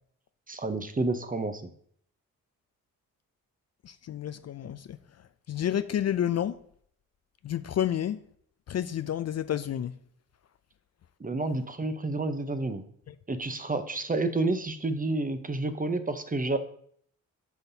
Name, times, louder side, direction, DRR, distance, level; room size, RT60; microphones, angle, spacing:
voice 1, 0.5-1.7 11.2-12.8 13.3-16.6, right 2 dB, 25° right, 0.8 m, -30 dB
voice 2, 4.1-4.8 5.5-6.5 7.4-8.2 8.7-9.9, left 10 dB, 45° left, 0.4 m, -29 dB
9.2 x 5.5 x 2.8 m
supercardioid pair, 50°, 37 cm